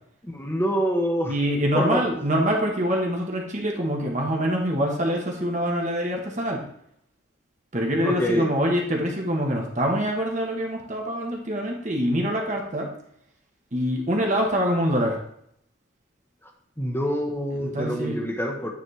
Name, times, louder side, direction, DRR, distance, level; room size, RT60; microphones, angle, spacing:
voice 1, 0.2-1.3 1.7-2.0 8.0-8.5 16.8-18.7, equal, 10° left, 1 dB, 1.0 m, -26 dB
voice 2, 1.3-6.6 7.7-12.9 13.7-15.2 17.6-18.2, equal, 35° right, 0 dB, 1.1 m, -25 dB
9.3 x 4.1 x 3.2 m, 0.72 s
head